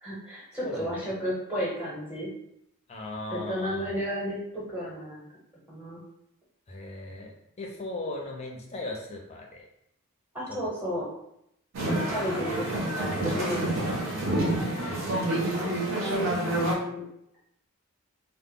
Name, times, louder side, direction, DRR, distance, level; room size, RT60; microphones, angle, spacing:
voice 1, 0.0-2.3 3.3-5.3 5.7-6.0 10.3-11.1 12.1-13.6 15.5-17.0, equal, 5° right, -5 dB, 0.7 m, -33 dB
voice 2, 0.6-1.1 2.9-3.9 6.7-9.7 10.5-10.7 12.5-12.7, left 2 dB, 30° left, 0 dB, 0.4 m, -38 dB
sound 1, 11.7-16.7, right 1 dB, 60° right, 0.7 m, -28 dB
2.0 x 2.0 x 3.6 m, 0.77 s
head